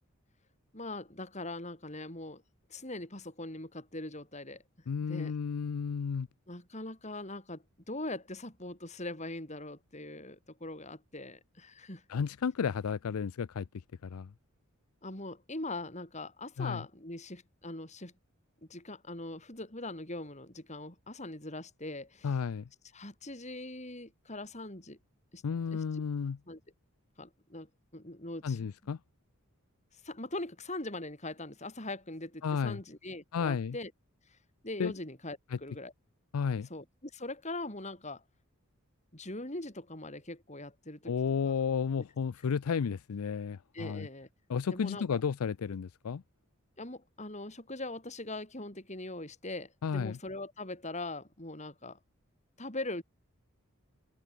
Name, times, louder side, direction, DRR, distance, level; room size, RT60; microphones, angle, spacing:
voice 1, 0.7-2.4 2.7-4.6 5.1-5.3 6.5-12.0 15.0-18.1 18.7-22.4 22.9-25.0 25.3-25.4 25.7-25.8 26.5-26.6 27.2-28.7 30.0-33.9 34.6-35.9 36.7-38.2 39.1-41.1 41.4-41.6 43.7-44.3 44.7-45.2 46.8-52.0 52.6-53.0, left 2 dB, 30° left, 5.1 m, -41 dB
voice 2, 4.9-6.3 12.1-13.7 14.0-14.3 16.6-16.8 22.2-22.6 25.4-26.4 28.4-29.0 32.4-32.8 33.3-33.8 34.8-34.9 36.3-36.7 41.1-44.1 44.5-46.2 49.8-50.2, left 6 dB, 85° left, 0.4 m, -32 dB
head